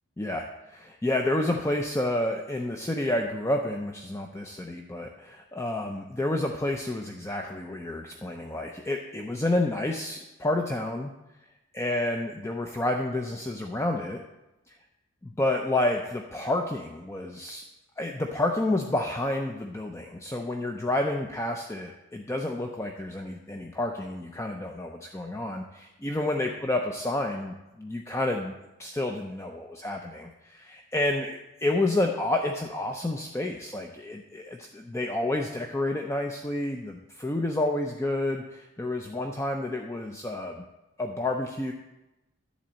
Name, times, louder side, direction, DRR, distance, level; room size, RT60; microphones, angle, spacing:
voice 1, 0.2-11.1 11.7-14.2 15.2-17.6 18.0-28.5 28.8-40.6 41.0-41.7, left 1 dB, 15° left, 3 dB, 0.4 m, -29 dB
10.5 x 4.1 x 7.4 m, 0.99 s
head